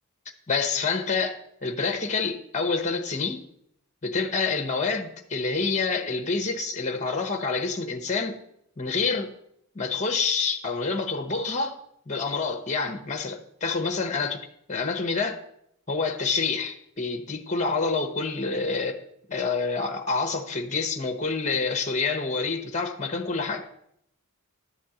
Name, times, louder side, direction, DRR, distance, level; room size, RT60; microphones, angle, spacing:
voice 1, 0.5-3.4 4.0-8.4 8.8-9.3 9.7-11.8 12.1-14.4 14.7-15.4 15.9-19.0 19.3-23.7, left 4 dB, 35° left, 1.0 m, -27 dB
11.5 x 4.3 x 7.7 m
head